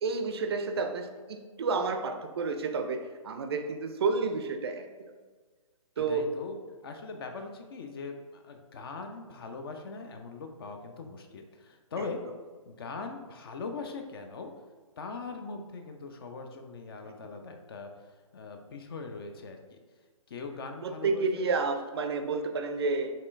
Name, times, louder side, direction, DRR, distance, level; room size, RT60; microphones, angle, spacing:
voice 1, 0.0-5.1 6.0-6.3 17.0-17.1 20.8-23.1, right 4 dB, 45° right, 6 dB, 0.4 m, -30 dB
voice 2, 6.0-6.6 6.8-12.2 12.7-14.5 15.0-17.9 18.3-19.8 20.3-21.5, left 4 dB, 45° left, 5 dB, 0.4 m, -41 dB
4.2 x 3.1 x 2.5 m, 1.5 s
figure-of-eight pair, 140°, 18 cm